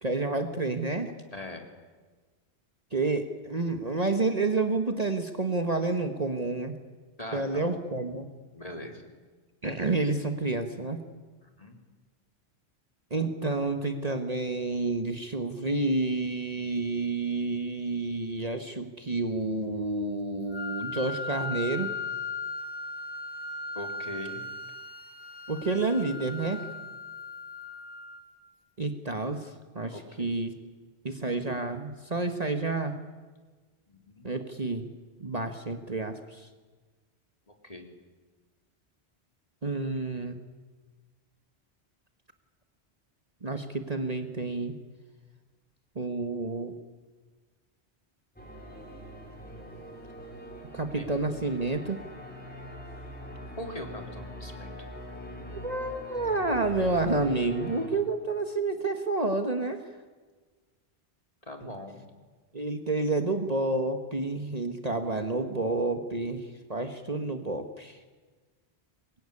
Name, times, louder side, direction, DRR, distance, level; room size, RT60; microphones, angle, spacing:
voice 1, 0.0-1.1 2.9-6.8 7.3-8.3 9.6-11.0 13.1-21.9 25.5-26.7 28.8-30.5 31.0-33.0 34.2-34.9 35.2-36.5 39.6-40.3 43.4-44.7 45.9-46.7 50.7-52.0 55.6-59.8 62.5-66.4 66.7-68.0, right 3 dB, 35° right, 6 dB, 1.6 m, -29 dB
voice 2, 7.2-7.8 8.5-9.0 11.4-11.8 23.7-24.4 29.9-30.3 33.9-34.3 37.5-37.8 50.9-51.1 53.6-54.7 61.4-62.1, left 1 dB, 35° left, 3 dB, 3.4 m, -41 dB
Wind instrument woodwind instrument, 20.5-28.5, left 3 dB, 85° left, 2.4 m, -38 dB
sound 1, 48.4-57.9, equal, 10° left, 4.7 m, -43 dB
24.0 x 21.0 x 9.9 m, 1.4 s
omnidirectional pair, 1.1 m